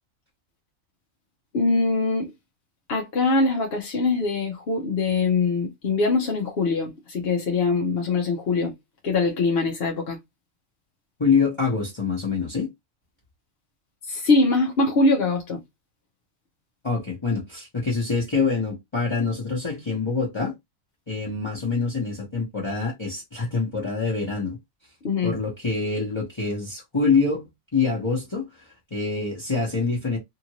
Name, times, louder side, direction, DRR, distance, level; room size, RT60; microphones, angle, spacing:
voice 1, 1.5-2.3 2.9-8.8 9.0-10.2 14.1-15.6 25.0-25.4, left 3 dB, 55° left, 0.9 m, -23 dB
voice 2, 11.2-12.7 16.8-20.5 21.1-24.6 25.2-28.5 28.9-30.2, left 4 dB, 25° left, 1.0 m, -25 dB
2.9 x 2.5 x 2.9 m
omnidirectional pair, 1.4 m